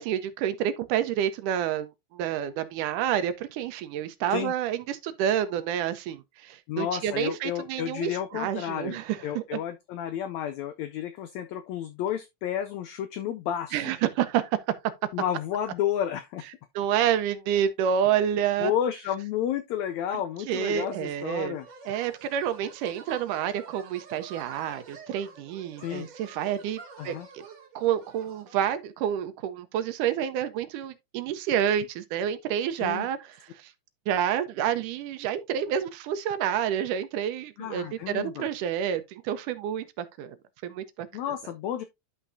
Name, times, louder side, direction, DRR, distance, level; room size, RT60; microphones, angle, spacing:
voice 1, 0.0-9.6 13.7-14.6 16.8-18.7 20.5-21.6 21.9-27.4 27.8-33.7 34.1-40.4 40.6-41.1, right 9 dB, 75° right, 2.1 m, -29 dB
voice 2, 6.7-13.8 15.1-16.4 18.6-21.7 25.8-26.1 27.0-27.3 32.8-33.1 37.6-38.5 41.1-41.8, left 10 dB, 90° left, 1.5 m, -31 dB
sound 1, 20.7-28.8, right 5 dB, 45° right, 2.7 m, -48 dB
11.0 x 5.7 x 2.6 m
omnidirectional pair, 3.9 m